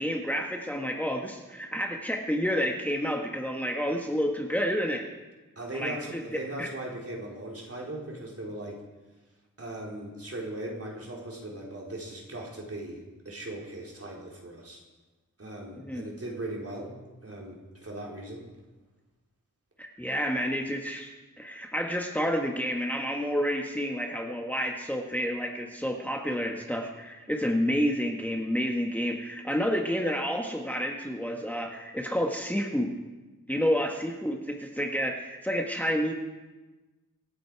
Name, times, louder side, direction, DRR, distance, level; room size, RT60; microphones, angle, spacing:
voice 1, 0.0-5.0 5.7-6.7 15.8-16.0 19.8-32.9 33.5-36.1, equal, 5° left, 2 dB, 1.4 m, -29 dB
voice 2, 5.6-8.8 9.6-13.0 13.3-14.8 15.4-16.9 17.2-18.4, right 1 dB, 45° right, -2 dB, 3.8 m, -38 dB
26.0 x 9.2 x 4.7 m, 1.2 s
wide cardioid pair, 75°, 33 cm